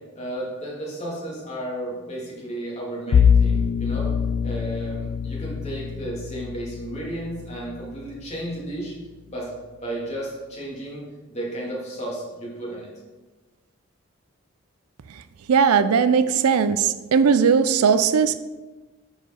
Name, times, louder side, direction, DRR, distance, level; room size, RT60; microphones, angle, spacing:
voice 1, 0.1-4.1 4.4-8.9 9.3-9.6 9.8-11.0 11.3-12.9, right 1 dB, 30° left, -5 dB, 2.5 m, -33 dB
Bowed string instrument, 3.1-8.2, left 7 dB, 85° left, 0.4 m, -23 dB
voice 2, 15.5-18.4, right 6 dB, 85° right, 12 dB, 0.4 m, -18 dB
9.9 x 4.9 x 4.4 m, 1.2 s
head